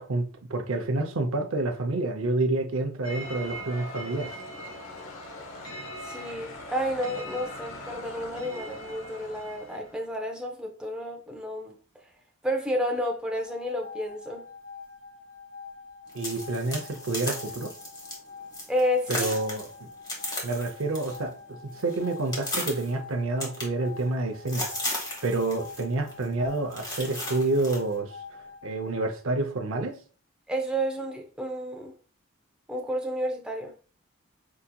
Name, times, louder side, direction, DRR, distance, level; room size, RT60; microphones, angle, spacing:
voice 1, 0.0-4.3 16.1-17.7 19.1-19.7 20.4-21.3 21.8-28.1 28.6-30.0, right 2 dB, 80° right, 0.6 m, -28 dB
sound 1, 3.0-10.1, equal, 80° left, 1.0 m, -40 dB
voice 2, 5.7-11.7 12.4-14.4 18.7-19.4 30.5-31.9 32.7-33.7, equal, 5° right, 0.5 m, -31 dB
sound 2, 13.3-29.1, left 5 dB, 40° left, 0.6 m, -46 dB
sound 3, 16.1-18.2 18.5-18.8 19.1-21.2 21.5-22.9 23.4-24.2 24.5-25.8 26.1-26.3 26.7-27.8, left 1 dB, 20° left, 1.2 m, -35 dB
4.7 x 2.8 x 2.2 m
head